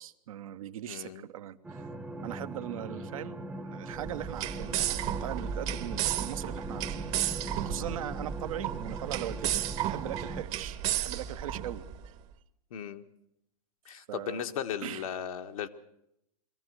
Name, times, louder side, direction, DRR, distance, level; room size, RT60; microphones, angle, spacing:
voice 1, 0.0-1.9 2.2-12.1 14.1-14.4 14.8-15.0, right 12 dB, 65° right, 9 dB, 1.0 m, -40 dB
voice 2, 0.9-1.2 12.7-13.1 13.8-15.7, left 9 dB, 65° left, 7 dB, 1.3 m, -36 dB
sound 1, 1.6-10.4, right 1 dB, 5° right, 0.9 m, -41 dB
sound 2, 3.9-12.1, right 10 dB, 35° right, 1.1 m, -33 dB
22.5 x 15.0 x 7.9 m, 0.80 s
hypercardioid pair, 120°, 19 cm